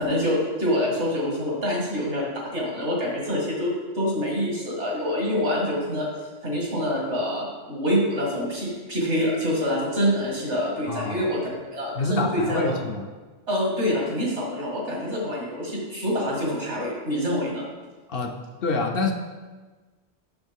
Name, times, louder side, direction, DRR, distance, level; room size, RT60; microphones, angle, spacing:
voice 1, 0.0-6.1 6.4-11.4 11.7-12.7 13.5-17.7, equal, 75° right, -3 dB, 2.3 m, -26 dB
voice 2, 10.9-11.3 12.0-13.1 18.1-19.1, left 3 dB, 60° left, 3 dB, 0.8 m, -27 dB
7.9 x 6.4 x 3.6 m, 1.3 s
omnidirectional pair, 1.2 m